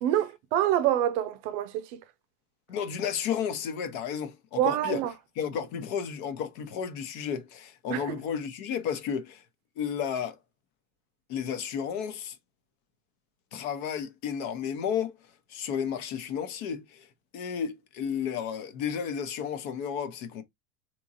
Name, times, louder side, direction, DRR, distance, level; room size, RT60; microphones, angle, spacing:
voice 1, 0.0-2.0 4.6-5.1 7.9-8.0, right 12 dB, 50° right, 0.6 m, -26 dB
voice 2, 2.7-5.0 5.3-9.4 9.8-10.4 11.3-12.4 13.5-15.2 15.5-17.1 17.3-20.4, left 7 dB, 55° left, 0.9 m, -32 dB
3.5 x 3.0 x 2.6 m
hypercardioid pair, 105°, 46 cm